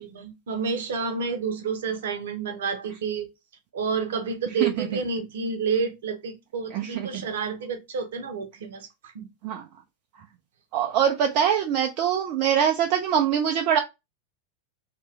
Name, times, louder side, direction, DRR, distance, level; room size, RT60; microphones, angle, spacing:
voice 1, 0.0-3.3 3.7-9.3, right 5 dB, 60° right, 0.8 m, -29 dB
voice 2, 6.7-7.1 9.4-9.6 10.7-13.8, right 8 dB, 40° right, 0.4 m, -23 dB
2.9 x 2.5 x 3.1 m
figure-of-eight pair, 90°, 0 cm